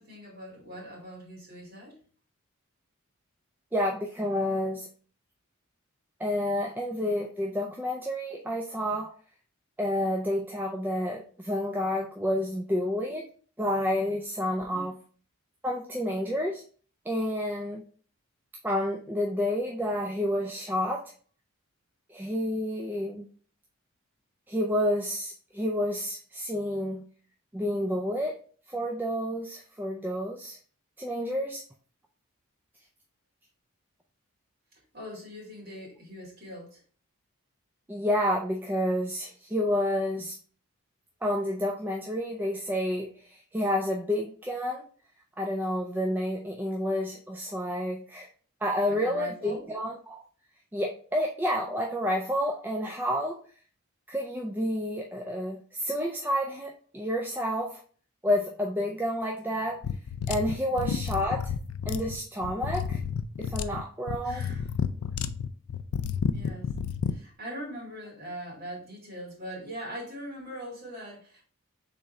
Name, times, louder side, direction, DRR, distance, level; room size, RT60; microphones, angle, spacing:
voice 1, 0.0-2.0 14.7-14.9 34.9-36.8 48.9-49.7 60.7-61.0 64.2-64.7 66.3-66.7 67.1-71.4, equal, 45° right, -4 dB, 2.1 m, -41 dB
voice 2, 3.7-4.9 6.2-9.1 9.8-13.3 13.6-14.9 15.6-16.6 17.1-17.8 18.6-21.1 22.1-23.3 24.5-27.0 27.5-28.3 28.7-30.6 31.0-31.6 37.9-40.3 41.2-44.9 45.4-48.3 48.6-50.2 50.7-53.4 54.1-57.8 58.2-59.8 60.3-61.5 61.9-63.0 63.4-64.4, equal, 10° right, 0 dB, 0.3 m, -29 dB
sound 1, 59.8-67.2, left 7 dB, 80° left, 0.3 m, -31 dB
3.6 x 3.2 x 4.1 m, 0.43 s
head